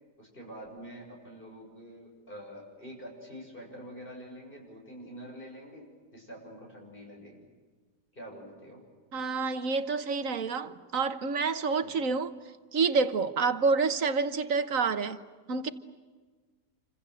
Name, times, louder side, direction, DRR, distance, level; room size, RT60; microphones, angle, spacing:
voice 1, 0.2-5.9 6.1-7.4 8.1-8.8 11.8-12.0, equal, 30° left, 7.0 m, -46 dB
voice 2, 9.1-12.3 12.7-15.2 15.5-15.7, right 4 dB, 60° right, 1.6 m, -28 dB
28.0 x 26.0 x 7.8 m
omnidirectional pair, 1.7 m